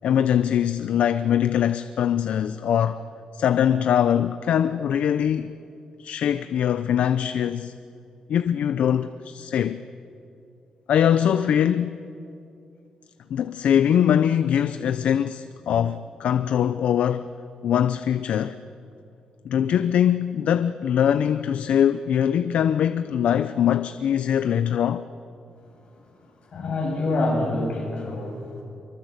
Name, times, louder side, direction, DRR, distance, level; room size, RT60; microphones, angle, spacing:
voice 1, 0.0-3.0 3.3-5.5 6.0-7.7 8.3-9.8 10.9-12.0 13.3-17.3 17.6-18.6 19.4-25.0, left 9 dB, 75° left, 0.7 m, -22 dB
voice 2, 26.5-28.6, left 2 dB, 50° left, 7.6 m, -26 dB
25.0 x 23.5 x 8.0 m
wide cardioid pair, 140°, 2 cm